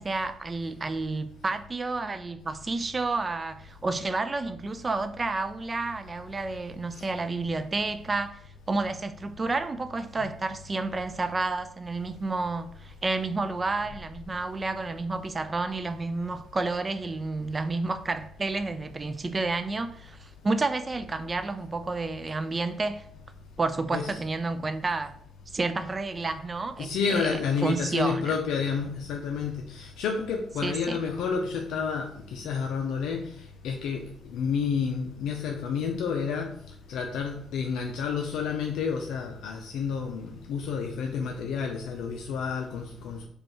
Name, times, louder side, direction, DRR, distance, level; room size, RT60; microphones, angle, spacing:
voice 1, 0.0-8.4 8.7-23.0 23.6-25.1 25.5-28.4 30.6-31.0, right 3 dB, 30° right, 0.4 m, -30 dB
voice 2, 26.8-33.4 33.6-36.6 36.9-43.3, left 6 dB, 85° left, 0.4 m, -30 dB
5.2 x 2.4 x 4.3 m
cardioid pair, 90°, 0 cm